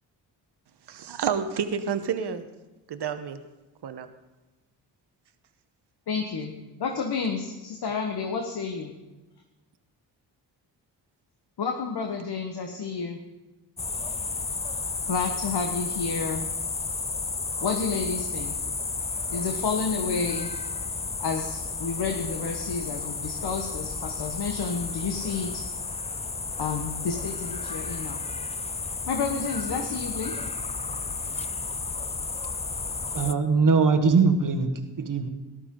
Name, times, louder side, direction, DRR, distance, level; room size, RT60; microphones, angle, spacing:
voice 1, 0.9-2.5 2.9-3.4 3.8-4.1, right 7 dB, 60° right, 10 dB, 1.1 m, -29 dB
voice 2, 6.1-6.5 6.8-8.9 11.6-13.2 15.1-16.5 17.6-18.6 19.3-20.5 21.2-25.6 26.6-28.2 29.1-30.4, left 5 dB, 55° left, 3 dB, 1.4 m, -30 dB
sound 1, 13.8-33.3, left 4 dB, 15° left, 0.4 m, -32 dB
voice 3, 33.1-34.7 35.0-35.3, right 4 dB, 45° right, 6 dB, 1.6 m, -21 dB
14.0 x 11.5 x 3.8 m, 1.1 s
supercardioid pair, 50°, 45 cm